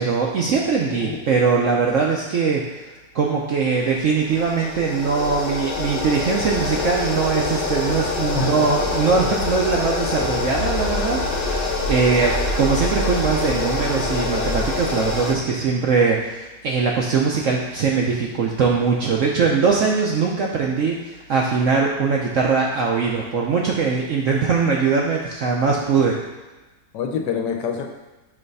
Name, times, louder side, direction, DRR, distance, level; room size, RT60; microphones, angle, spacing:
voice 1, 0.0-2.9 3.1-26.2, right 5 dB, 65° right, -2 dB, 0.7 m, -21 dB
sound 1, 3.7-15.3, left 3 dB, 50° left, 0.7 m, -25 dB
voice 2, 8.3-8.9 26.9-27.9, left 6 dB, 80° left, 4 dB, 1.3 m, -26 dB
5.5 x 3.3 x 5.3 m, 1.2 s
omnidirectional pair, 1.9 m